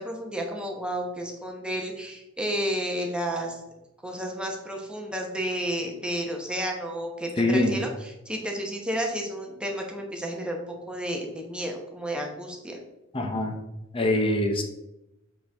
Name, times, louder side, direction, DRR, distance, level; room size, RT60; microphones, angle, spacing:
voice 1, 0.0-3.6 4.0-7.9 8.3-12.8, equal, 5° right, 1 dB, 1.0 m, -31 dB
voice 2, 7.4-7.8 13.1-13.6 13.9-14.6, left 1 dB, 30° left, 3 dB, 0.8 m, -24 dB
7.3 x 4.4 x 3.5 m, 0.93 s
head